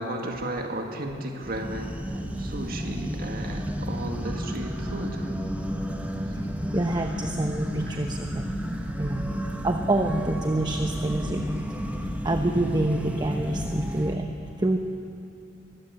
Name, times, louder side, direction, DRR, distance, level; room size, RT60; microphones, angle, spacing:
voice 1, 0.0-5.3 7.9-8.0, right 1 dB, 50° right, 3 dB, 2.0 m, -34 dB
sound 1, 1.4-14.1, equal, 10° right, 1.6 m, -32 dB
voice 2, 6.7-8.5 9.0-9.3 9.6-11.6 12.2-14.3 14.6-14.8, right 1 dB, 25° right, 5 dB, 0.9 m, -27 dB
23.0 x 20.0 x 8.1 m, 2.6 s
head